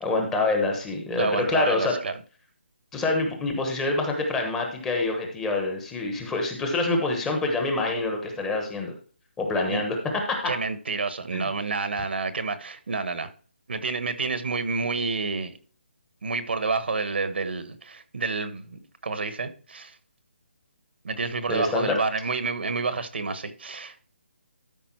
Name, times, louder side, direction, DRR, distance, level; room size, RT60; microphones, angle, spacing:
voice 1, 0.0-1.9 2.9-8.9 9.4-10.0 10.3-10.5 11.3-11.5 21.5-22.0, left 3 dB, 5° left, 1.1 m, -26 dB
voice 2, 1.2-2.2 9.7-9.8 10.4-13.3 13.7-15.6 16.2-19.9 21.0-24.1, right 4 dB, 65° right, 1.3 m, -29 dB
12.5 x 5.1 x 4.6 m
hypercardioid pair, 170°, 6 cm